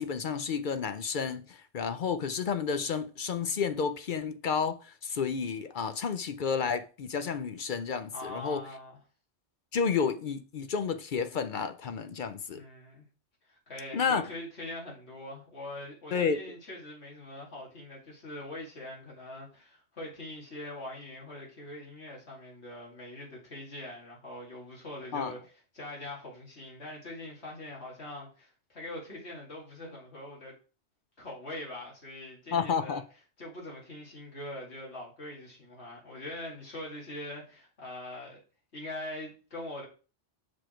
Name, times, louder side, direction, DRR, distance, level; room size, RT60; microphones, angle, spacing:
voice 1, 0.0-8.6 9.7-12.6 13.9-14.3 16.1-16.4 25.1-25.3 32.5-33.0, left 6 dB, 55° left, 0.6 m, -31 dB
voice 2, 8.1-8.9 12.5-13.0 13.5-25.4 25.7-30.5 31.2-33.0 33.4-38.4 38.7-39.9, left 1 dB, 70° left, 2.8 m, -43 dB
6.3 x 4.8 x 4.4 m
omnidirectional pair, 1.2 m